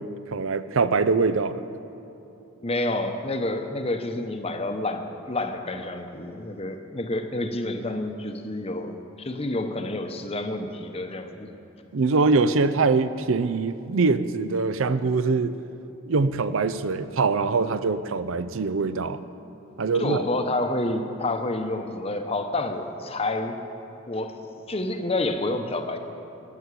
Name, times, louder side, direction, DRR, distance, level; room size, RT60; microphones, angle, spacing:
voice 1, 0.0-1.6 11.9-15.6 16.1-19.2 19.8-20.2, right 4 dB, 65° right, 13 dB, 0.5 m, -23 dB
voice 2, 2.6-11.5 20.0-23.6 24.1-24.4 24.7-26.0, left 2 dB, 25° left, 6 dB, 0.8 m, -29 dB
12.5 x 10.0 x 8.3 m, 2.8 s
head